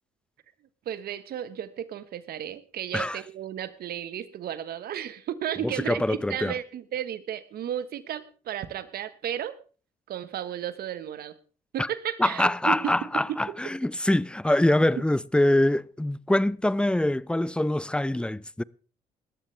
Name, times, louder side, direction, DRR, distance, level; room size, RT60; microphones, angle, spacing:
voice 1, 0.8-9.6 10.1-11.3 11.7-12.9, right 10 dB, 65° right, 1.4 m, -33 dB
voice 2, 5.6-6.5 11.8-11.9 12.2-18.6, left 1 dB, 5° left, 0.6 m, -24 dB
19.0 x 13.0 x 3.4 m
supercardioid pair, 60°, 17 cm